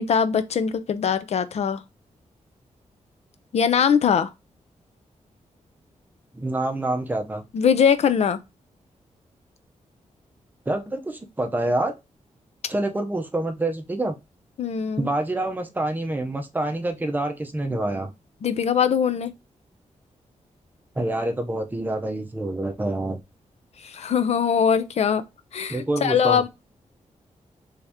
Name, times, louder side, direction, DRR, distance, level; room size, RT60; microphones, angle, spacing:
voice 1, 0.0-1.8 3.5-4.3 7.5-8.4 14.6-15.1 18.4-19.3 23.8-25.2 25.5-26.5, left 7 dB, 55° left, 0.5 m, -21 dB
voice 2, 6.3-7.4 10.7-11.9 12.7-14.1 15.0-18.1 21.0-23.2 25.7-26.4, right 2 dB, 15° right, 0.6 m, -26 dB
3.5 x 2.8 x 3.5 m
wide cardioid pair, 150°, 13 cm